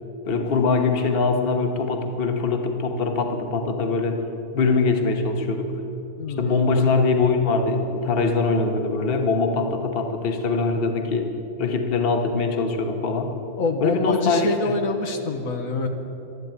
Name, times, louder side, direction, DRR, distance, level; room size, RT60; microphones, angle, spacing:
voice 1, 0.3-4.2 4.5-5.7 6.4-11.3 11.6-13.4 13.8-14.8, left 4 dB, 45° left, 5 dB, 1.3 m, -22 dB
voice 2, 6.2-6.6 13.6-15.9, left 3 dB, 70° left, 4 dB, 1.4 m, -25 dB
12.5 x 11.5 x 8.9 m, 2.9 s
omnidirectional pair, 1.5 m